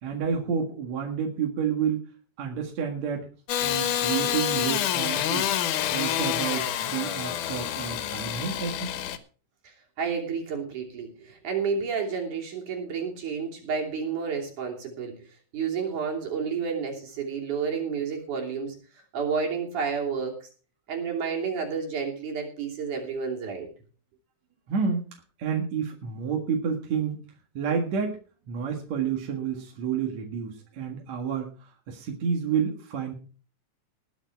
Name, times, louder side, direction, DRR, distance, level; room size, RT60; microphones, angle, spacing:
voice 1, 0.0-2.0 2.4-3.3 3.6-5.5 5.9-9.0 24.7-25.1 25.4-27.2 27.5-28.2 28.5-33.1, right 6 dB, 65° right, 1 dB, 3.0 m, -29 dB
Engine starting / Sawing, 3.5-9.2, left 10 dB, 85° left, 2.5 m, -27 dB
voice 2, 10.0-15.1 15.5-18.8 19.1-20.4 20.9-23.7, right 6 dB, 80° right, 0 dB, 4.5 m, -30 dB
20.0 x 7.3 x 4.6 m, 0.38 s
omnidirectional pair, 3.5 m